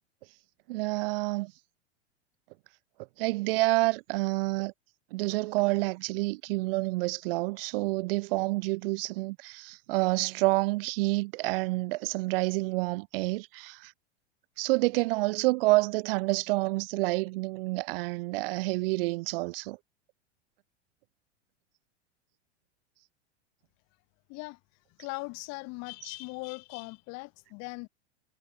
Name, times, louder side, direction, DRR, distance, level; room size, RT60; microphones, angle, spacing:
voice 1, 0.7-1.5 3.2-4.7 5.1-13.9 14.6-19.8, right 23 dB, 55° right, 1.0 m, -28 dB
voice 2, 25.0-27.9, left 27 dB, 50° left, 4.9 m, -39 dB
hypercardioid pair, 95°, 35 cm